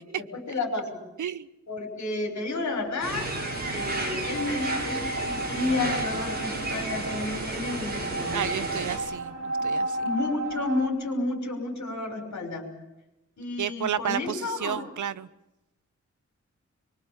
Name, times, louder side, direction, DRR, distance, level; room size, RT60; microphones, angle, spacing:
voice 1, 0.2-1.0 1.7-3.3 3.7-8.7 9.6-9.7 10.0-12.7 13.4-14.8, left 2 dB, 70° left, 3 dB, 6.0 m, -31 dB
sound 1, 2.8-10.9, right 2 dB, 60° right, 6.4 m, -34 dB
sound 2, 3.0-9.0, right 2 dB, 30° right, 7.1 m, -33 dB
voice 2, 8.3-10.0 13.6-15.3, right 9 dB, 85° right, 14 dB, 0.9 m, -31 dB
24.0 x 24.0 x 7.4 m, 0.92 s
wide cardioid pair, 160°, 29 cm